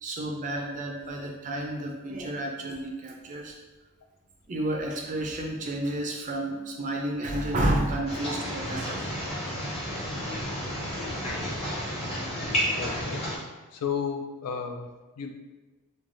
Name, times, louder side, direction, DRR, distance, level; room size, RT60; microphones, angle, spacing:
voice 1, 0.0-3.5 4.5-9.1, right 1 dB, 35° right, 1 dB, 0.4 m, -31 dB
Raining - from start to end, 8.1-13.4, equal, 25° left, 0.7 m, -31 dB
voice 2, 12.8-13.2 13.7-14.9 15.2-15.3, left 6 dB, 85° left, 5 dB, 0.4 m, -33 dB
3.2 x 2.2 x 2.6 m, 1.2 s
head